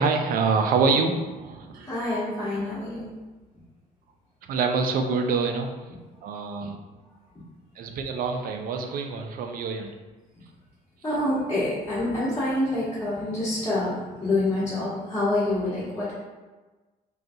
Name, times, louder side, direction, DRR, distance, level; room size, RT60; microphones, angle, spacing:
voice 1, 0.0-1.9 4.5-5.7 6.2-6.8 7.8-9.9, right 4 dB, 55° right, 4 dB, 0.5 m, -25 dB
voice 2, 1.9-3.1 11.0-16.1, left 1 dB, 15° left, -13 dB, 1.2 m, -26 dB
3.8 x 2.4 x 2.7 m, 1.2 s
cardioid pair, 110°, 17 cm